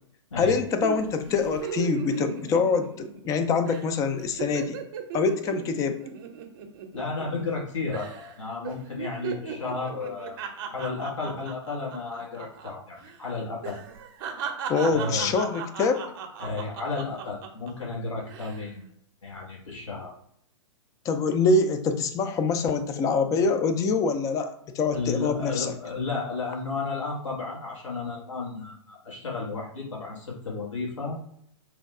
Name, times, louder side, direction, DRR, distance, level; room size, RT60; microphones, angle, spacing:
voice 1, 0.4-4.8 5.1-6.0 14.7-16.1 21.1-25.7, left 4 dB, 20° left, 8 dB, 0.4 m, -25 dB
sound 1, 0.8-3.3 3.7-3.9 4.2-7.6 7.9-8.3 8.6-12.7 13.0-13.2 13.6-17.7 18.2-18.6, right 6 dB, 45° right, 0.7 m, -36 dB
voice 2, 6.9-10.4 10.7-13.8 14.9-15.4 16.4-18.8 19.2-20.1 24.9-31.2, left 4 dB, 80° left, -3 dB, 1.2 m, -33 dB
3.4 x 2.2 x 3.6 m, 0.70 s
hypercardioid pair, 115°, 16 cm